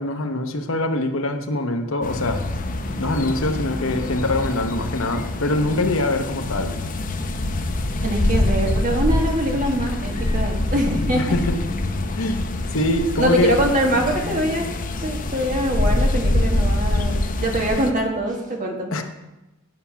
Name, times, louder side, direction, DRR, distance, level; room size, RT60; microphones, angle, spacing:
voice 1, 0.0-2.4 3.0-6.7 11.2-11.6 12.2-13.6 18.9-19.0, left 2 dB, 60° left, 6 dB, 0.9 m, -23 dB
sound 1, 2.0-17.9, left 1 dB, 35° left, 0.7 m, -25 dB
voice 2, 8.0-11.4 13.2-14.7 15.0-19.0, right 1 dB, 35° right, 1 dB, 1.7 m, -23 dB
9.4 x 7.1 x 5.7 m, 0.97 s
head